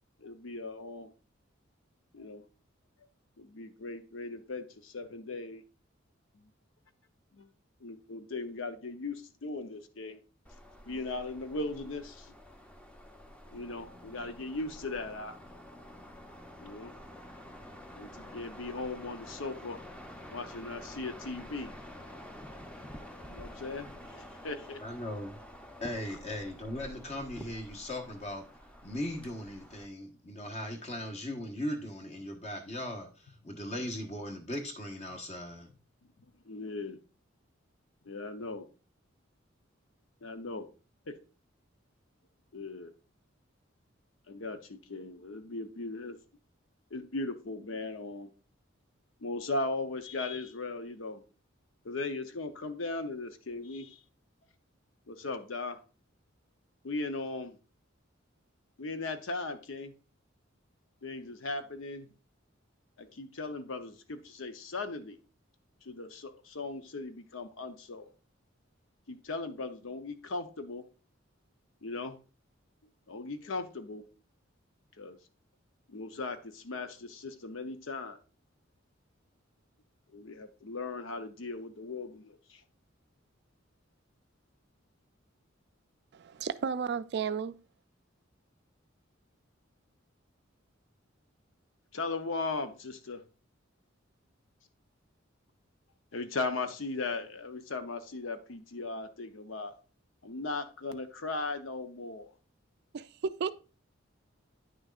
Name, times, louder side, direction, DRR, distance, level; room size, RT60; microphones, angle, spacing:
voice 1, 0.2-1.1 2.1-2.4 3.4-5.6 6.3-6.5 7.3-7.5 7.8-10.2 10.9-12.3 13.5-15.4 16.6-16.9 18.0-19.8 20.3-21.7 23.3-24.8 36.5-37.0 38.1-38.7 40.2-40.7 41.1-41.2 42.5-42.9 44.3-46.2 46.9-48.3 49.2-51.2 51.8-54.0 55.1-55.8 56.8-57.6 58.8-59.9 61.0-62.1 63.0-65.2 65.8-68.1 69.1-70.8 71.8-72.2 73.1-74.0 75.0-75.2 75.9-78.2 80.1-82.6 91.9-93.2 96.1-99.7 100.2-102.3, left 3 dB, 75° left, 0.7 m, -38 dB
sound 1, 10.4-29.9, equal, 5° left, 0.7 m, -49 dB
sound 2, 13.5-24.1, left 1 dB, 55° left, 1.7 m, -57 dB
voice 2, 24.8-25.4 25.8-28.5 28.8-35.7, left 1 dB, 35° left, 1.2 m, -38 dB
voice 3, 86.1-87.6 102.9-103.5, right 6 dB, 55° right, 0.4 m, -33 dB
9.4 x 6.3 x 2.4 m
head